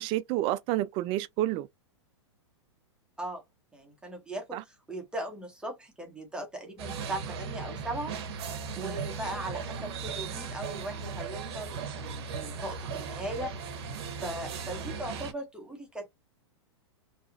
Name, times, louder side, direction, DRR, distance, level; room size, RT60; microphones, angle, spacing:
voice 1, 0.0-1.7 4.5-4.6 8.8-9.0, right 15 dB, 35° right, 0.4 m, -30 dB
voice 2, 3.7-8.1 8.7-13.5 14.2-16.1, right 1 dB, 5° right, 1.0 m, -39 dB
sound 1, 6.8-15.3, right 5 dB, 60° right, 0.8 m, -37 dB
2.8 x 2.3 x 2.4 m
hypercardioid pair, 110°, 15 cm